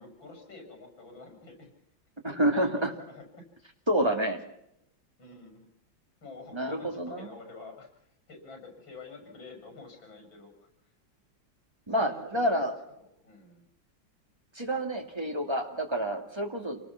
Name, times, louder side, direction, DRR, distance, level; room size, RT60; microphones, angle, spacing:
voice 1, 0.0-1.7 2.5-2.7 3.0-3.7 5.2-5.7 6.2-7.9 8.3-10.7 12.0-12.7 13.0-13.7, left 3 dB, 80° left, 5 dB, 7.3 m, -48 dB
voice 2, 2.2-2.9 3.9-4.4 6.5-7.3 11.9-12.7 14.5-16.8, right 1 dB, 15° right, 3 dB, 2.6 m, -28 dB
27.5 x 19.5 x 6.0 m, 0.78 s
omnidirectional pair, 2.1 m